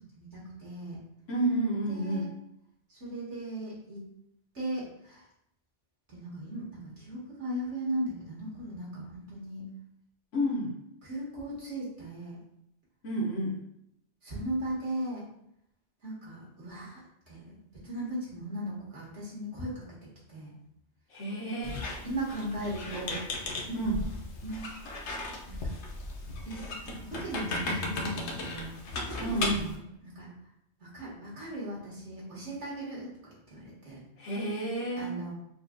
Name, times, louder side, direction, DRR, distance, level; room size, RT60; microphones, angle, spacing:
voice 1, 0.2-1.0 1.9-2.3 2.9-4.0 4.5-5.2 6.1-9.6 11.0-12.4 14.2-15.3 16.0-17.0 17.3-17.6 17.8-19.8 20.3-20.5 22.0-23.2 23.7-23.9 24.4-24.7 25.3-25.8 26.4-29.8 30.0-30.3 30.8-33.1 33.5-34.0 35.0-35.3, right 1 dB, 70° right, -7 dB, 2.0 m, -37 dB
voice 2, 1.3-2.3 10.3-10.7 13.0-13.6 21.1-21.8 23.7-24.0 29.2-29.7 34.2-35.1, right 1 dB, 90° left, -5 dB, 1.3 m, -30 dB
Squeak, 21.6-29.8, left 2 dB, 70° left, 1.0 m, -36 dB
6.6 x 2.3 x 2.5 m, 0.77 s
omnidirectional pair, 1.2 m